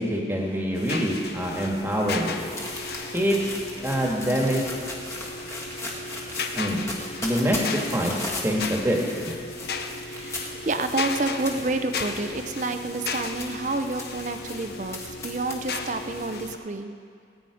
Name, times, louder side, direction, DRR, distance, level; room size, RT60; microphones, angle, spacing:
voice 1, 0.0-2.3 3.1-3.4 3.8-4.6 6.5-6.8 7.2-7.6 7.9-8.2 8.4-9.0 9.2-9.3, equal, 15° right, -1 dB, 1.7 m, -25 dB
sound 1, 0.7-16.6, left 3 dB, 55° left, 0.7 m, -35 dB
sound 2, 1.5-16.5, left 2 dB, 15° left, 1.5 m, -38 dB
voice 2, 10.1-17.0, right 2 dB, 40° right, 8 dB, 0.6 m, -29 dB
19.0 x 9.3 x 5.0 m, 2.3 s
head